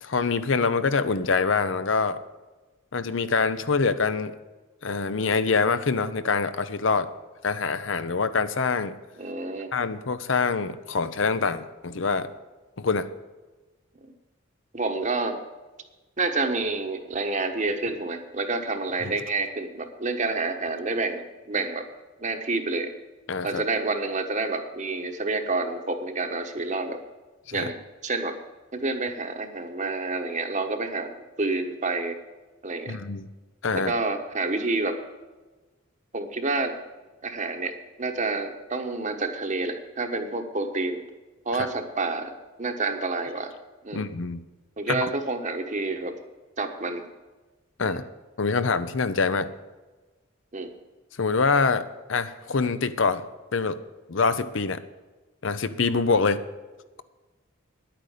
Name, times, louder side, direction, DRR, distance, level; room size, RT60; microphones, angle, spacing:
voice 1, 0.0-2.2 2.9-4.3 4.8-7.1 7.4-8.9 9.7-12.3 12.8-13.1 19.0-19.1 23.3-23.6 27.5-27.7 32.9-33.3 33.6-33.9 43.9-44.4 44.9-45.1 47.8-48.0 48.4-49.5 51.2-53.2 53.5-53.8 54.1-54.8 55.4-56.4, left 4 dB, 70° left, 12 dB, 0.7 m, -25 dB
voice 2, 9.2-9.7 14.7-15.4 16.2-21.8 22.2-22.9 23.4-27.0 27.5-28.4 28.7-32.2 32.6-33.0 33.7-35.0 36.1-36.7 37.2-41.0 41.4-42.3 42.6-43.5 43.8-44.0 44.8-46.1 46.6-47.0 47.8-48.0 50.5-50.7, right 3 dB, 35° right, 6 dB, 1.2 m, -28 dB
10.5 x 8.9 x 6.6 m, 1.2 s
head